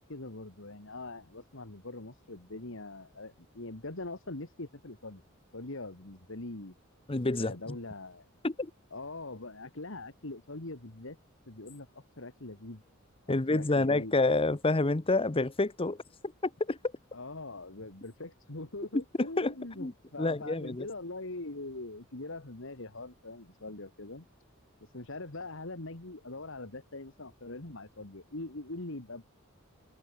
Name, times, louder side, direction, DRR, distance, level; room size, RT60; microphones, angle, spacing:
voice 1, 0.0-5.2 5.5-6.7 7.4-8.3 8.9-11.2 11.5-12.8 13.3-14.1 17.1-24.3 24.8-29.2, left 2 dB, 65° left, 2.3 m, -42 dB
voice 2, 7.1-7.6 8.4-8.7 13.3-16.0 16.4-16.8 18.9-19.5 19.8-19.9 20.2-20.9, left 2 dB, 25° left, 0.9 m, -28 dB
head